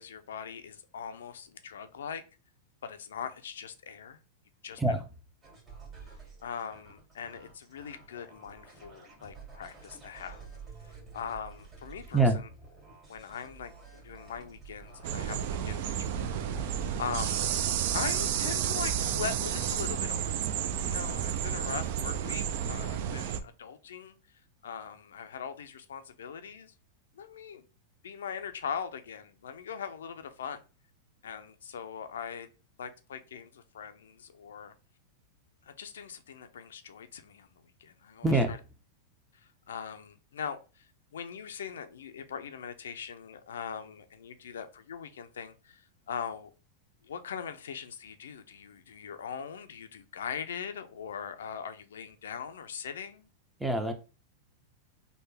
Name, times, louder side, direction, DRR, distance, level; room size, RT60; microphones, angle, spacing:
voice 1, 0.0-2.2 2.8-4.2 4.6-4.8 6.4-10.5 10.8-12.5 13.1-17.4 17.9-24.2 24.6-26.7 27.2-27.6 28.0-30.6 31.2-32.5 32.8-34.7 35.6-38.6 39.3-46.5 47.0-53.3, left 7 dB, 85° left, 0.4 m, -41 dB
sound 1, 5.4-19.6, right 5 dB, 25° right, 1.7 m, -48 dB
sound 2, 15.0-23.4, right 9 dB, 60° right, 0.3 m, -31 dB
voice 2, 53.6-53.9, right 2 dB, 5° right, 0.5 m, -25 dB
3.4 x 2.2 x 3.3 m
hypercardioid pair, 120°, 0 cm